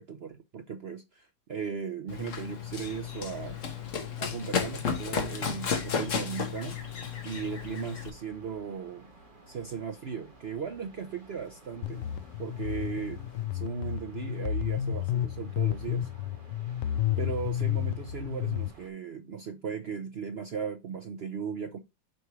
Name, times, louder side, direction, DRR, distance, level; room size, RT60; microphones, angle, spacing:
voice 1, 0.0-3.6 4.2-6.8 7.2-9.1 9.5-12.0 12.4-13.2 13.5-16.1 17.2-21.8, right 6 dB, 75° right, 0.5 m, -37 dB
Run, 2.1-8.1, left 6 dB, 50° left, 1.4 m, -33 dB
sound 1, 2.7-18.9, right 2 dB, 25° right, 2.4 m, -54 dB
sound 2, 11.8-18.7, left 11 dB, 80° left, 0.7 m, -31 dB
7.5 x 4.7 x 3.1 m
omnidirectional pair, 2.0 m